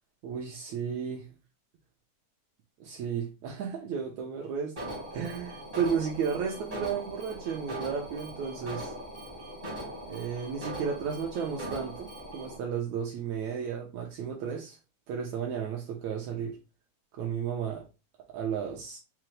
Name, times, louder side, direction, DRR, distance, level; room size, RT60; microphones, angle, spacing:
voice 1, 0.2-1.3 2.8-8.9 10.1-14.8 15.1-16.6 17.1-17.9 18.3-19.0, right 7 dB, 80° right, 1.7 m, -33 dB
Alarm, 4.8-12.6, right 1 dB, 40° right, 0.5 m, -40 dB
5.7 x 2.0 x 3.1 m
omnidirectional pair, 3.8 m